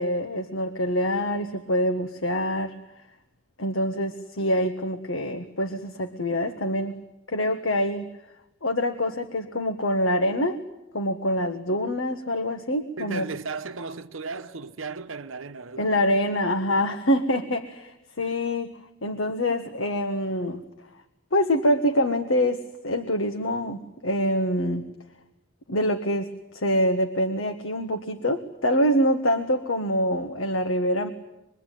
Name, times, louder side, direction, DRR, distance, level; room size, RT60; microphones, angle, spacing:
voice 1, 0.0-2.7 3.6-7.0 7.3-8.1 8.6-10.6 10.9-13.2 15.8-18.7 19.0-20.6 21.3-24.8 25.7-31.1, equal, 75° left, 1.4 m, -25 dB
voice 2, 13.0-15.9, right 4 dB, 80° right, 0.9 m, -35 dB
25.0 x 22.5 x 9.2 m
head